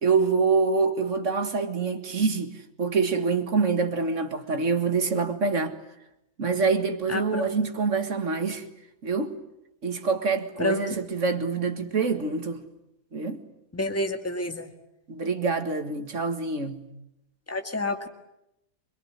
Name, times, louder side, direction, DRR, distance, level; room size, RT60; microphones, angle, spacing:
voice 1, 0.0-5.8 6.4-8.6 9.0-9.4 9.8-12.6 13.1-13.4 15.1-16.8, right 4 dB, 55° right, 2.1 m, -26 dB
voice 2, 7.1-7.5 10.6-11.0 13.7-14.7 17.5-18.1, left 2 dB, 10° left, 2.0 m, -29 dB
26.0 x 22.5 x 9.8 m
omnidirectional pair, 1.6 m